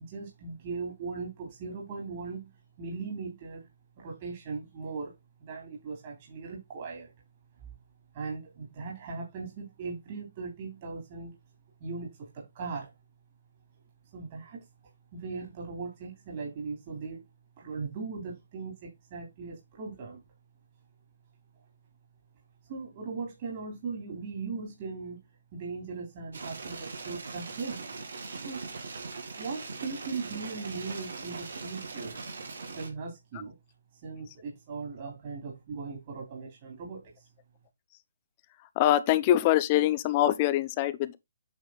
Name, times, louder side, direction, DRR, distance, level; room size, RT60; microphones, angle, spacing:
voice 1, 0.0-2.5 2.8-3.6 4.0-5.1 5.4-7.1 8.1-11.3 11.8-12.9 14.1-14.6 15.1-17.2 17.6-20.2 22.7-25.2 25.5-27.8 28.4-28.6 29.4-32.2 32.7-33.5 33.9-37.3, right 4 dB, 40° right, 3.4 m, -39 dB
sound 1, 26.3-32.9, right 4 dB, 75° right, 2.0 m, -40 dB
voice 2, 38.8-41.2, left 13 dB, 30° left, 0.6 m, -24 dB
9.1 x 3.7 x 3.9 m
hypercardioid pair, 150°, 0 cm